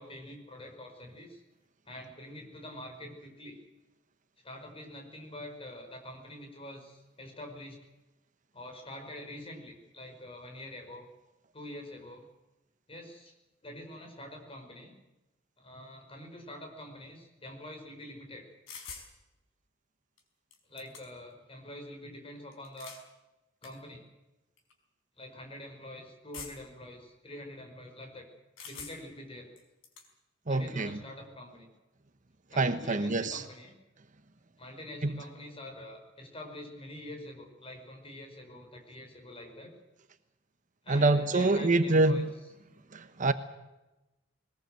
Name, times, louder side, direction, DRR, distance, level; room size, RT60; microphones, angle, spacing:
voice 1, 0.0-1.4 1.9-3.6 4.4-7.8 8.5-11.1 11.5-12.3 12.9-13.3 13.6-14.9 15.6-18.5 20.7-22.9 23.6-24.0 25.2-28.3 28.7-29.5 30.4-31.7 32.5-33.7 34.6-39.7 40.8-42.2, left 1 dB, 30° left, 5.4 m, -45 dB
sound 1, 18.7-19.1 20.2-20.3 20.5-21.3 22.5-23.0 23.6-23.7 24.6-24.7 26.3-26.8 28.6-29.2 29.6-30.1, left 5 dB, 85° left, 5.0 m, -45 dB
voice 2, 30.5-31.0 32.6-33.4 35.0-35.2 40.9-42.3 42.9-43.3, right 2 dB, 40° right, 1.1 m, -26 dB
21.5 x 20.0 x 7.8 m
head